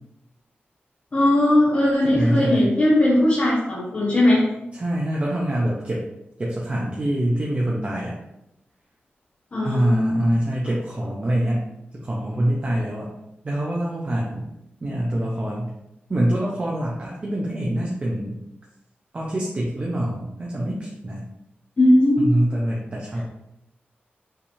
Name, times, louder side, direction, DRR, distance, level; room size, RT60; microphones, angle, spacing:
voice 1, 1.1-4.4 9.5-10.2 21.8-22.3, left 1 dB, 40° left, -8 dB, 1.1 m, -18 dB
voice 2, 2.0-2.7 4.7-6.0 6.4-8.1 9.6-11.7 11.9-13.1 13.4-14.5 14.8-15.7 16.1-18.4 19.1-21.3 22.2-23.2, right 1 dB, 35° right, -4 dB, 0.7 m, -25 dB
5.6 x 3.3 x 2.7 m, 0.87 s
wide cardioid pair, 165°, 4 cm